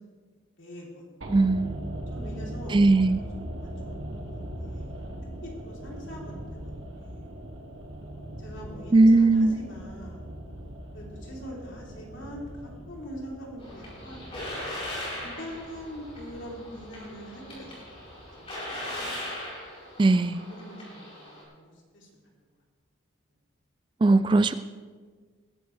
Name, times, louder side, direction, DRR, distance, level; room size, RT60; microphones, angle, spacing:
voice 1, 0.6-1.1 2.1-4.0 4.3-5.0 5.4-7.3 8.4-10.3 10.9-14.6 15.2-19.1 20.5-22.1, equal, 70° left, -3 dB, 3.7 m, -43 dB
sound 1, 1.2-19.4 19.7-19.8, right 1 dB, 85° right, 1.8 m, -41 dB
voice 2, 1.3-1.8 2.7-3.2 8.9-9.6 20.0-20.4 24.0-24.6, right 2 dB, 25° right, 13 dB, 0.3 m, -19 dB
sound 2, 13.6-21.4, left 1 dB, 30° left, 4.8 m, -39 dB
20.0 x 12.0 x 3.4 m, 1.5 s
head